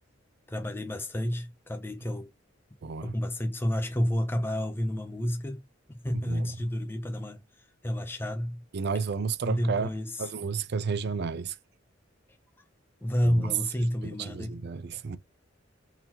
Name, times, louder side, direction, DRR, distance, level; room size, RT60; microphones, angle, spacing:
voice 1, 0.5-2.3 3.0-5.6 5.9-8.6 9.4-10.3 13.0-14.6, equal, 10° left, 0.5 m, -30 dB
voice 2, 2.8-3.2 6.1-6.6 8.7-9.9 10.2-11.6 13.2-13.5 14.0-15.2, right 5 dB, 55° right, 0.5 m, -32 dB
3.8 x 2.8 x 2.8 m
head